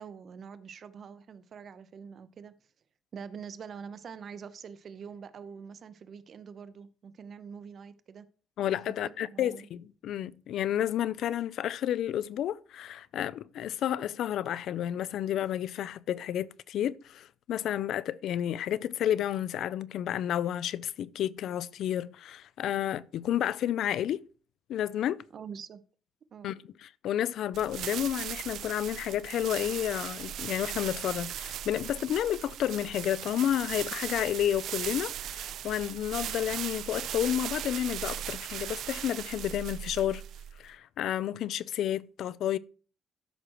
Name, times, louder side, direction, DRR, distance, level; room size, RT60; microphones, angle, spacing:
voice 1, 0.0-2.5 3.1-8.3 9.0-9.7 25.3-25.8 26.3-26.5, right 6 dB, 50° right, 0.8 m, -45 dB
voice 2, 8.6-24.2 24.7-25.2 26.4-40.2 40.6-42.6, left 11 dB, 75° left, 0.4 m, -31 dB
sound 1, 27.5-40.7, right 11 dB, 75° right, 0.5 m, -38 dB
13.0 x 6.2 x 3.0 m
cardioid pair, 105°, 0 cm